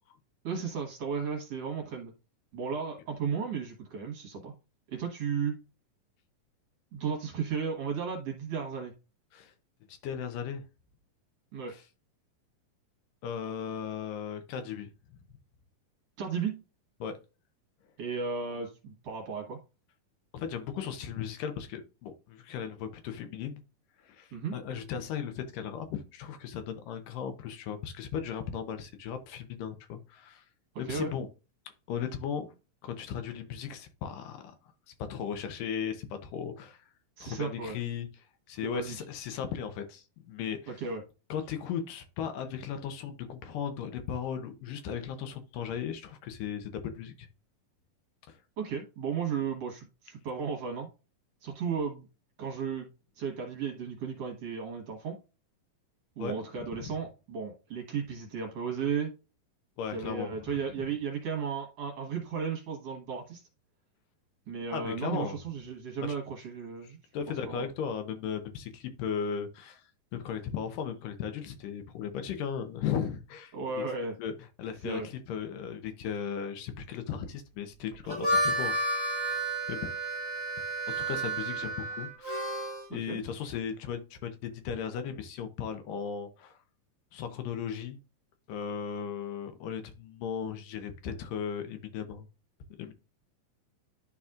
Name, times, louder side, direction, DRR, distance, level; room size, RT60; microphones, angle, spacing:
voice 1, 0.4-2.1 2.5-4.5 4.9-5.6 6.9-8.9 11.5-11.7 16.2-16.6 18.0-19.6 24.3-24.5 30.8-31.1 37.2-37.8 38.6-39.0 40.7-41.0 48.6-50.9 51.4-52.1 52.4-52.9 53.2-55.2 56.2-59.1 59.9-63.4 64.5-67.0 67.5-67.7 73.5-74.1 74.8-75.1 82.9-83.2, right 6 dB, 55° right, 2.0 m, -34 dB
voice 2, 9.9-10.6 11.7-11.8 13.2-15.2 17.0-17.1 20.3-23.6 24.0-30.4 30.8-31.3 31.9-32.5 32.8-34.6 35.1-36.9 37.2-38.1 38.5-40.7 41.3-47.3 48.3-48.4 56.2-56.9 59.8-60.6 64.7-65.4 66.0-66.1 66.8-69.8 70.1-73.5 74.2-74.3 74.6-79.3 79.7-79.9 81.0-86.6 87.1-88.0 88.5-92.3 92.8-92.9, left 7 dB, 75° left, 2.3 m, -36 dB
Harmonica, 77.9-82.9, right 1 dB, 15° left, 1.7 m, -31 dB
11.5 x 4.1 x 2.4 m
omnidirectional pair, 4.0 m